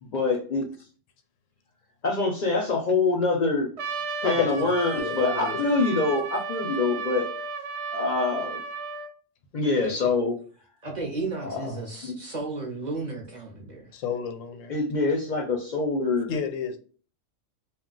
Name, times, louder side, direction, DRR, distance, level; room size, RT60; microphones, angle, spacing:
voice 1, 0.0-0.7 2.0-3.7 4.2-7.3 7.9-8.6 9.5-10.4 11.4-11.6 12.0-12.1 14.7-16.3, left 3 dB, 55° left, 0.5 m, -25 dB
Trumpet, 3.8-9.1, right 4 dB, 70° right, 0.8 m, -33 dB
voice 2, 4.2-4.5 4.9-5.7 13.9-14.7 16.3-16.8, left 7 dB, 85° left, 0.9 m, -30 dB
voice 3, 10.8-13.9, right 3 dB, 50° right, 0.5 m, -33 dB
2.3 x 2.2 x 3.7 m
omnidirectional pair, 1.3 m